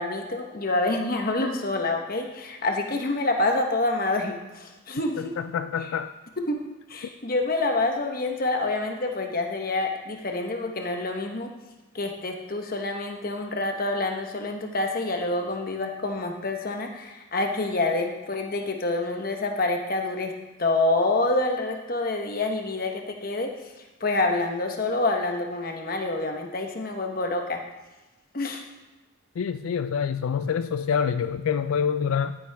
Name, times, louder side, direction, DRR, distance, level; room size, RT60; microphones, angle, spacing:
voice 1, 0.0-5.3 6.5-6.6 6.9-11.5 11.9-20.3 20.6-23.5 24.0-27.6 28.3-28.6, left 2 dB, 45° left, 3 dB, 1.1 m, -27 dB
voice 2, 5.2-6.1 29.4-32.4, left 7 dB, 80° left, 11 dB, 0.3 m, -26 dB
11.5 x 9.7 x 3.4 m, 1.1 s
head